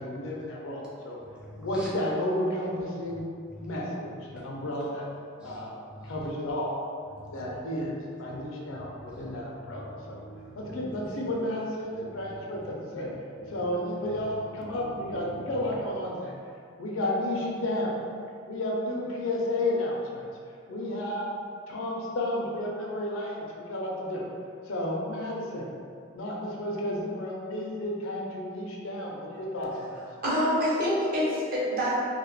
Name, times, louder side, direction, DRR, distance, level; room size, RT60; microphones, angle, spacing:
voice 1, 0.0-1.2 1.6-3.2 3.6-5.1 5.4-5.7 6.0-6.8 7.3-10.2 10.6-13.1 13.5-16.3 16.8-18.0 18.5-20.3 20.7-21.3 21.7-24.2 24.7-25.7 26.1-30.0, left 1 dB, 85° left, -2 dB, 0.5 m, -32 dB
voice 2, 1.4-1.9 3.6-3.7 4.3-4.6 5.4-6.2 7.1-7.4 8.3-8.4 8.7-9.4 9.7-10.8 12.0-12.7 13.0-13.7 14.1-14.3 14.6-15.4, right 1 dB, 5° right, -7 dB, 0.5 m, -46 dB
voice 3, 30.2-32.0, equal, 45° right, -7 dB, 0.7 m, -26 dB
2.3 x 2.0 x 3.1 m, 2.3 s
head